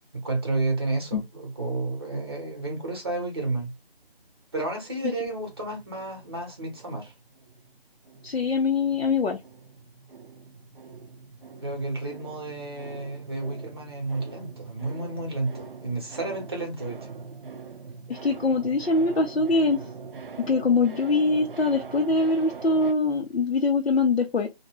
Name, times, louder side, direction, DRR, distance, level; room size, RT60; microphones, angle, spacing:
voice 1, 0.1-3.7 4.5-7.1 11.6-17.0, right 2 dB, 25° right, 0.8 m, -31 dB
sound 1, 5.2-7.8 8.0-22.9, right 5 dB, 60° right, 0.5 m, -43 dB
voice 2, 8.2-9.4 18.1-19.8 20.4-24.5, left 3 dB, 85° left, 0.6 m, -23 dB
2.2 x 2.1 x 3.1 m
figure-of-eight pair, 160°, 30 cm